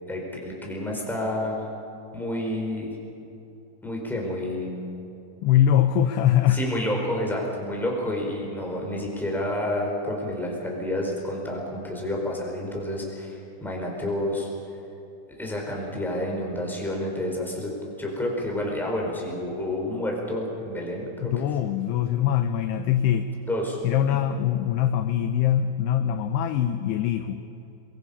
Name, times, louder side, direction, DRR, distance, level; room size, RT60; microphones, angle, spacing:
voice 1, 0.1-1.6 2.1-2.9 3.8-4.9 6.5-14.5 15.4-17.7 18.0-21.3 23.5-23.8 24.1-24.2, left 1 dB, ahead, -1 dB, 3.6 m, -29 dB
voice 2, 5.4-6.6 21.2-23.3 23.8-27.4, left 10 dB, 80° left, 8 dB, 2.5 m, -23 dB
23.5 x 23.0 x 5.6 m, 2.8 s
omnidirectional pair, 5.5 m